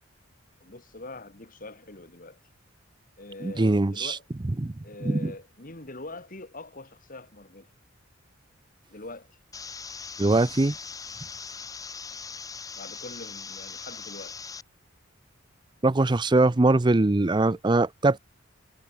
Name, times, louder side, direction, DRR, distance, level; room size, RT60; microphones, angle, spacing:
voice 1, 0.6-2.4 3.2-4.3 4.8-7.7 8.9-9.4 12.8-14.4, left 2 dB, 45° left, 2.5 m, -43 dB
voice 2, 3.4-4.2 4.6-4.7 5.1-5.3 10.2-10.7 15.8-18.2, right 2 dB, 20° right, 0.5 m, -22 dB
blue-noise, 9.5-14.6, left 5 dB, 20° left, 0.9 m, -40 dB
head